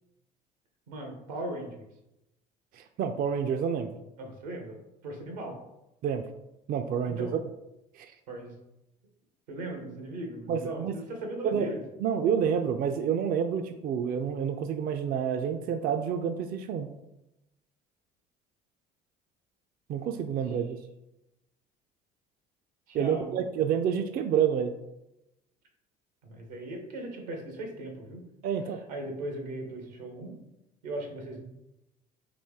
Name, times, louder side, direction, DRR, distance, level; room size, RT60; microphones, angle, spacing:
voice 1, 0.9-1.9 4.2-4.8 5.0-5.6 7.1-7.4 8.3-8.5 9.5-11.8 20.4-20.6 22.9-23.4 26.2-28.2 28.6-30.4 30.8-31.4, right 1 dB, 85° right, 3 dB, 1.0 m, -38 dB
voice 2, 2.7-3.9 6.0-6.3 6.7-7.3 7.9-8.1 10.5-10.9 11.4-11.7 12.0-16.9 19.9-20.8 22.9-24.7 28.4-28.8, right 8 dB, 45° right, 7 dB, 0.4 m, -28 dB
4.3 x 2.7 x 3.5 m, 0.90 s
hypercardioid pair, 65°, 21 cm